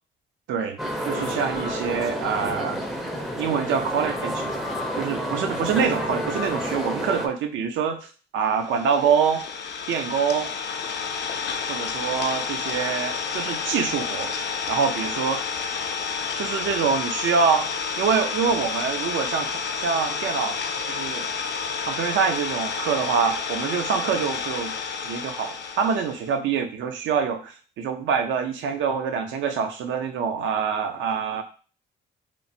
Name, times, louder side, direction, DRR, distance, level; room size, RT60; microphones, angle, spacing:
sound 1, 0.8-7.3, equal, ahead, 0.4 m, -29 dB
voice 1, 1.1-2.8 3.4-4.5 5.0-9.4 9.9-10.5 11.7-14.3 14.7-15.4 16.4-17.7 18.0-20.6 20.9-21.3 21.9-24.8 25.0-31.4, right 6 dB, 75° right, 6 dB, 0.5 m, -25 dB
Idling, 8.6-26.3, left 6 dB, 60° left, 0.4 m, -30 dB
3.0 x 2.1 x 2.6 m, 0.38 s
cardioid pair, 90°, 20 cm